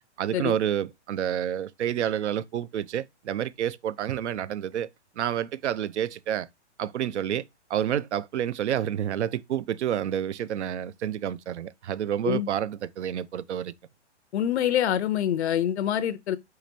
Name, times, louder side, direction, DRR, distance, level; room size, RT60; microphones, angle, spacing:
voice 1, 0.2-4.9 5.2-6.5 6.8-7.4 7.7-13.7, right 10 dB, 75° right, 0.5 m, -29 dB
voice 2, 14.3-16.4, left 10 dB, 70° left, 0.5 m, -25 dB
4.8 x 4.4 x 2.5 m
hypercardioid pair, 130°, 35 cm